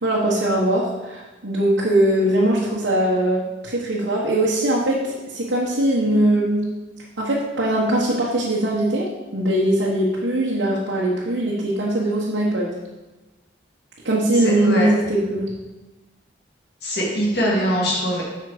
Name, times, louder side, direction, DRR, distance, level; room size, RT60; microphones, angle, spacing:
voice 1, 0.0-6.7 7.2-12.7 14.0-15.5, right 1 dB, 70° right, -4 dB, 1.3 m, -21 dB
voice 2, 14.4-14.9 16.8-18.2, equal, 55° left, -4 dB, 2.5 m, -22 dB
8.2 x 5.8 x 5.1 m, 1.1 s
head